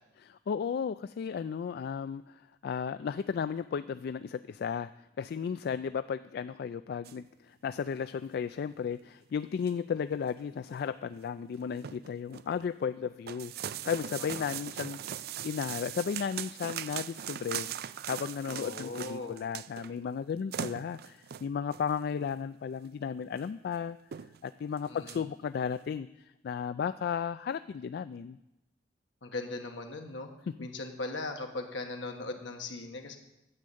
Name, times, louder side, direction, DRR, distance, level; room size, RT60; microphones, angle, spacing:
voice 1, 0.2-4.9 5.2-15.2 15.4-24.0 24.4-28.4 30.5-30.6, left 7 dB, 55° left, 13 dB, 0.3 m, -34 dB
sound 1, 7.0-7.2 7.7-7.9 8.2-8.3 8.8-8.9 9.4-9.9 10.3-10.4 10.7-10.8 11.1-11.3 11.6-12.5 13.3-19.9 20.2-20.3 20.5-21.9 22.8-22.9 23.3-23.4 23.7-23.8 24.1-24.5 24.8-25.2, right 10 dB, 55° right, 0.4 m, -40 dB
voice 2, 18.5-19.3 24.9-25.2 29.2-30.3 30.6-33.2, left 2 dB, 75° left, 4 dB, 1.6 m, -39 dB
9.7 x 7.5 x 8.5 m, 0.91 s
head